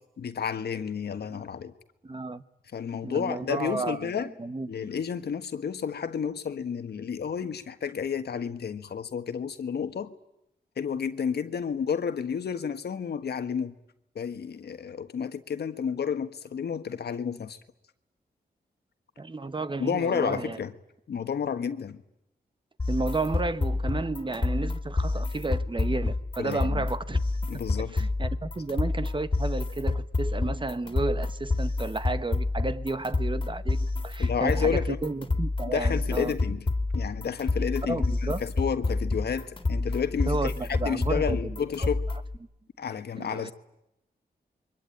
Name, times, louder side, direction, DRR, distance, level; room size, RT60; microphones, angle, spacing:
voice 1, 0.2-1.7 2.7-4.3 4.7-10.1 10.8-13.7 14.1-17.6 19.8-20.7 21.1-22.0 26.4-26.8 27.5-27.9 34.2-35.0 35.6-36.7 36.9-40.5 40.8-42.0 42.8-43.5, left 7 dB, 80° left, 1.5 m, -31 dB
voice 2, 2.0-2.4 3.0-4.9 19.2-20.6 22.9-27.2 27.8-36.4 37.9-38.4 40.3-41.9 43.2-43.5, right 3 dB, 30° right, 1.1 m, -32 dB
sound 1, 22.8-42.4, left 3 dB, 30° left, 2.7 m, -29 dB
27.5 x 23.5 x 9.1 m
cardioid pair, 75°, 17 cm